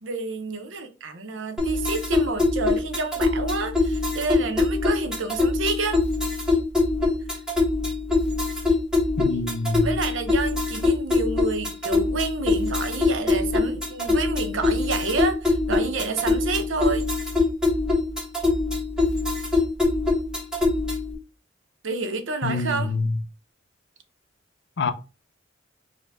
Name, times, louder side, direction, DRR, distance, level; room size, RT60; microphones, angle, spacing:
voice 1, 0.0-6.0 9.8-17.1 21.8-22.9, right 3 dB, 75° right, 0.7 m, -29 dB
sound 1, 1.6-21.1, left 3 dB, 5° right, 1.3 m, -23 dB
voice 2, 9.2-9.9 22.4-23.1 24.8-24.9, left 3 dB, 65° left, 0.6 m, -25 dB
4.9 x 2.2 x 3.4 m
head